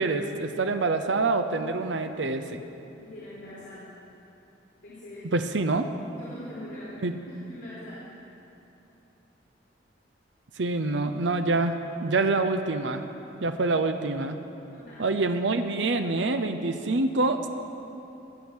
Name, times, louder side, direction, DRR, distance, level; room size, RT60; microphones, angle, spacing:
voice 1, 0.0-2.6 5.3-5.9 7.0-7.1 10.6-13.0 13.4-14.4 15.0-17.5, right 3 dB, 80° right, 8 dB, 0.7 m, -26 dB
voice 2, 3.0-3.9 4.8-5.3 6.2-8.1 13.6-13.8 14.7-15.1, left 1 dB, 70° left, -11 dB, 3.4 m, -43 dB
19.5 x 8.6 x 6.3 m, 2.9 s
head